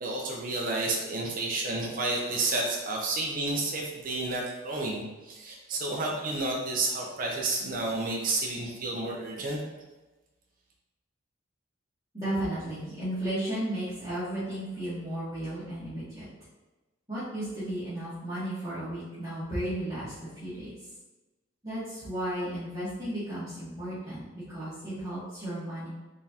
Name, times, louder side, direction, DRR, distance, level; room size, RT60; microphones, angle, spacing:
voice 1, 0.0-9.6, right 2 dB, 40° right, -2 dB, 0.6 m, -31 dB
voice 2, 12.1-16.2 17.1-20.7 21.6-25.9, right 1 dB, 20° right, -15 dB, 1.3 m, -34 dB
3.7 x 3.5 x 2.8 m, 1.1 s
head